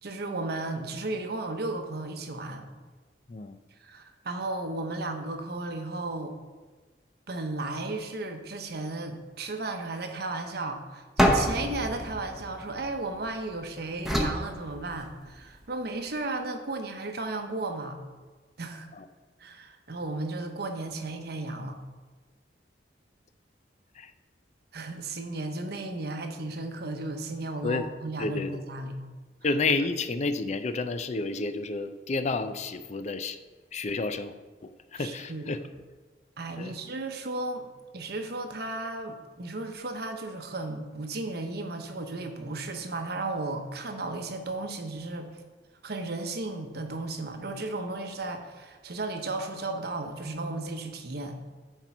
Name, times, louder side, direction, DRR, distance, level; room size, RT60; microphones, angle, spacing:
voice 1, 0.0-2.7 3.8-6.4 7.3-18.0 18.6-18.9 19.4-21.8 24.7-29.0 34.9-35.6 36.4-37.7 37.9-45.4 45.8-51.4, right 2 dB, 65° right, 6 dB, 0.9 m, -34 dB
sound 1, 11.2-13.4 14.0-15.4, equal, ahead, 0.9 m, -27 dB
voice 2, 28.2-28.6 29.4-33.4 33.7-34.3 34.6-35.6 36.6-36.8, left 3 dB, 40° left, 10 dB, 0.5 m, -30 dB
9.2 x 4.5 x 6.0 m, 1.4 s
head